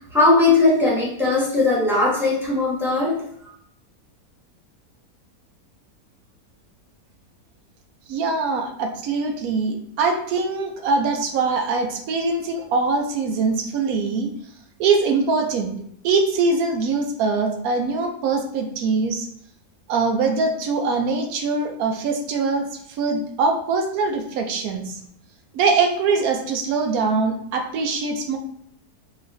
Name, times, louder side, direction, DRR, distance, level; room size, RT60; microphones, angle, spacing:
voice 1, 0.1-3.2, left 3 dB, ahead, -7 dB, 1.0 m, -18 dB
voice 2, 8.1-14.3 14.8-15.7 16.0-19.3 19.9-25.0 25.5-28.4, right 4 dB, 75° right, 4 dB, 1.0 m, -23 dB
3.9 x 3.1 x 2.6 m, 0.68 s
omnidirectional pair, 1.6 m